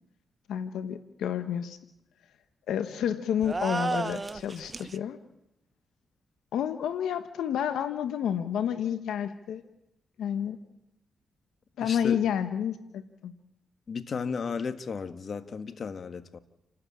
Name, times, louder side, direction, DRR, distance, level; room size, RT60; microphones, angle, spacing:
voice 1, 0.5-1.8 2.7-5.2 6.5-9.6 10.2-10.6 11.8-13.3, left 9 dB, 85° left, 10 dB, 1.2 m, -30 dB
sound 1, 3.4-5.0, right 3 dB, 30° right, 0.9 m, -32 dB
voice 2, 11.8-12.2 13.9-16.4, left 5 dB, 55° left, 10 dB, 1.5 m, -34 dB
29.0 x 13.0 x 8.7 m, 0.85 s
cardioid pair, 65°, 0 cm